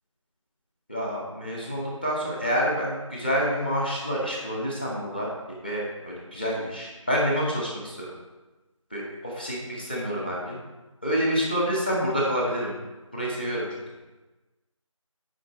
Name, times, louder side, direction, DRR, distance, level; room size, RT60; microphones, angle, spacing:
voice 1, 0.9-5.3 5.6-8.1 8.9-10.6 11.0-12.7 13.1-13.7, equal, 15° left, -4 dB, 1.0 m, -28 dB
8.8 x 4.9 x 4.3 m, 1.1 s
figure-of-eight pair, 170°, 17 cm